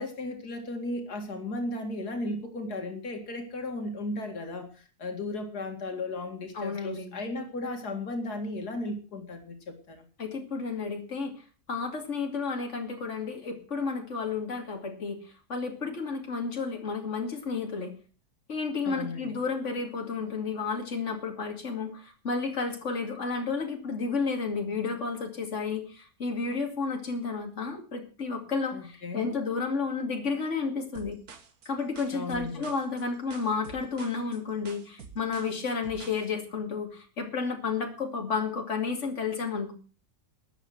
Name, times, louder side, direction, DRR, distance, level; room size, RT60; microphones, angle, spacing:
voice 1, 0.0-10.0 18.9-19.4 28.7-29.4 32.1-32.7, left 2 dB, 80° left, 4 dB, 2.7 m, -35 dB
voice 2, 6.5-7.2 10.2-11.3 11.7-15.2 15.5-17.9 18.5-31.1 31.6-39.7, left 4 dB, 50° left, 3 dB, 2.9 m, -32 dB
sound 1, 30.9-36.2, right 5 dB, 70° right, 1.9 m, -48 dB
13.5 x 9.2 x 7.8 m, 0.39 s
omnidirectional pair, 1.6 m